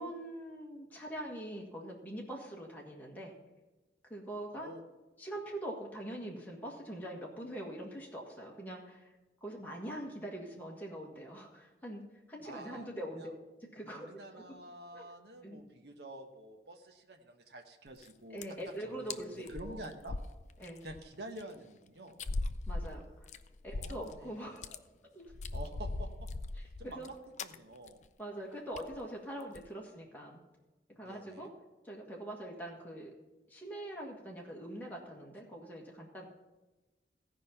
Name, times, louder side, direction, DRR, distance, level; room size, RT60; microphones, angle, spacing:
voice 1, 0.0-3.3 4.0-4.7 5.2-9.1 9.4-12.0 12.3-13.3 13.7-14.1 14.3-14.6 14.9-15.1 15.4-15.6 18.3-19.9 20.6-20.9 22.7-23.3 23.6-24.8 25.1-25.2 26.5-27.1 28.2-30.4 30.9-31.5 31.8-33.1 33.5-36.2, right 1 dB, 10° left, -3 dB, 1.6 m, -43 dB
voice 2, 4.5-4.8 12.4-12.9 13.2-13.3 13.9-18.4 19.1-20.2 20.8-22.2 23.7-24.6 25.5-26.3 26.8-27.1 27.4-28.0 31.0-31.5, right 1 dB, 65° right, 4 dB, 1.0 m, -48 dB
sound 1, 17.9-18.1 18.4-18.7 19.1-19.2 19.5-21.0 21.4-21.5 22.2-24.2 24.5-24.8 25.3-27.1 27.4-27.6 27.9-28.1 28.3-28.4 28.8-29.0 29.4-29.7, left 2 dB, 40° left, 0.4 m, -39 dB
15.5 x 5.2 x 5.7 m, 1.1 s
head